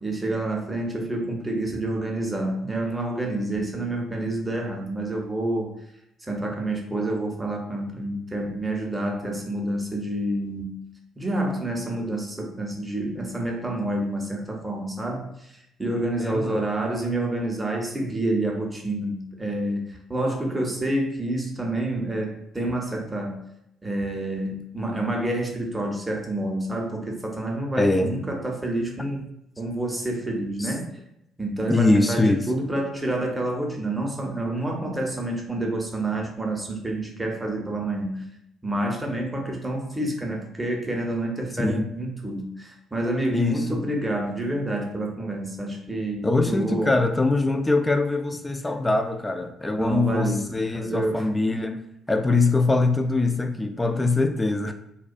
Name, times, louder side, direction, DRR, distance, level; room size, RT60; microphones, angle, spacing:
voice 1, 0.0-5.7 6.2-10.8 11.2-23.4 23.8-29.2 29.6-30.9 31.4-38.2 38.6-47.0 49.7-51.2, right 1 dB, 15° right, 0 dB, 0.7 m, -28 dB
voice 2, 16.2-16.6 27.8-28.1 30.6-30.7 31.7-32.4 41.6-41.8 43.3-43.6 46.2-51.8 52.1-54.7, left 2 dB, 20° left, 7 dB, 0.3 m, -23 dB
2.3 x 2.1 x 2.5 m, 0.80 s
figure-of-eight pair, 45°, 0 cm